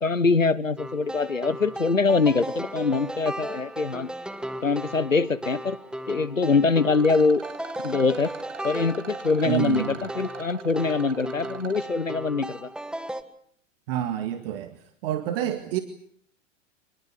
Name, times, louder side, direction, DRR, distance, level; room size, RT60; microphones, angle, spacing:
voice 1, 0.0-4.1 4.6-5.8 6.1-7.4 7.8-8.3 8.6-12.7, left 4 dB, 90° left, 18 dB, 1.3 m, -23 dB
sound 1, 0.8-13.2, right 1 dB, ahead, 1.7 m, -36 dB
Rattle, 6.9-11.9, right 7 dB, 70° right, 2.2 m, -44 dB
voice 2, 9.4-10.0 13.9-14.8 15.0-15.8, right 11 dB, 50° right, 8 dB, 2.1 m, -28 dB
26.0 x 21.0 x 8.4 m, 0.63 s
figure-of-eight pair, 95°, 38 cm